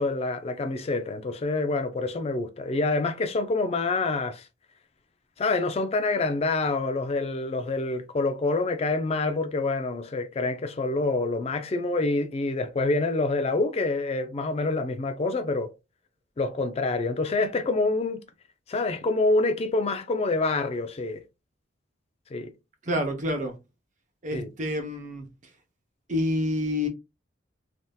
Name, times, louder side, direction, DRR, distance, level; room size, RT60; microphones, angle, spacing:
voice 1, 0.0-4.4 5.4-15.7 16.4-18.2 18.7-21.2 22.3-22.5 24.3-24.5, left 3 dB, 35° left, 0.4 m, -26 dB
voice 2, 22.9-23.5 24.2-25.3 26.1-26.9, left 1 dB, 40° right, 0.7 m, -28 dB
3.4 x 2.7 x 2.2 m
head